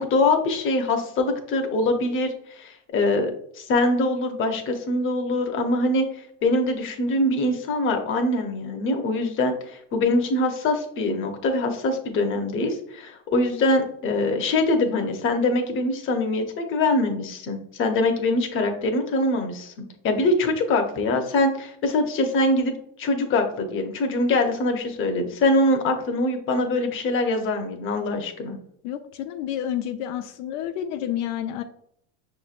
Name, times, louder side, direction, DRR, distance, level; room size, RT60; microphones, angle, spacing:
voice 1, 0.0-3.3 3.5-6.0 6.4-19.7 20.0-22.7 23.0-28.6, left 2 dB, 35° left, 4 dB, 0.8 m, -23 dB
voice 2, 28.8-31.6, left 10 dB, 80° left, 7 dB, 0.5 m, -29 dB
6.0 x 3.1 x 2.5 m, 0.70 s
cardioid pair, 140°, 34 cm